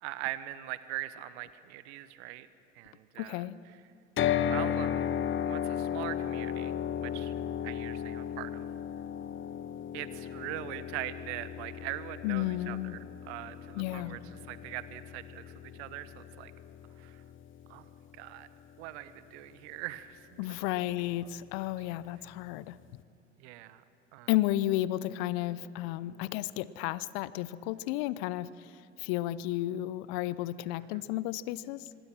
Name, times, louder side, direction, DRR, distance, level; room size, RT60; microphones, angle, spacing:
voice 1, 0.0-2.5 2.7-3.5 4.4-5.1 5.4-7.3 7.6-8.7 9.9-13.0 13.2-14.2 14.5-16.5 17.0-17.2 17.7-17.9 18.2-18.5 18.8-20.6 21.2-21.3 23.4-23.8 24.1-24.3 30.9-31.0, right 15 dB, 70° right, 14 dB, 1.2 m, -41 dB
voice 2, 3.2-3.6 12.2-13.0 13.8-14.2 20.4-22.8 24.3-28.7 29.0-31.9, left 15 dB, 65° left, 18 dB, 0.8 m, -32 dB
sound 1, 4.2-18.3, left 9 dB, 35° left, 0.8 m, -35 dB
25.5 x 21.0 x 6.2 m, 2.8 s
hypercardioid pair, 65°, 35 cm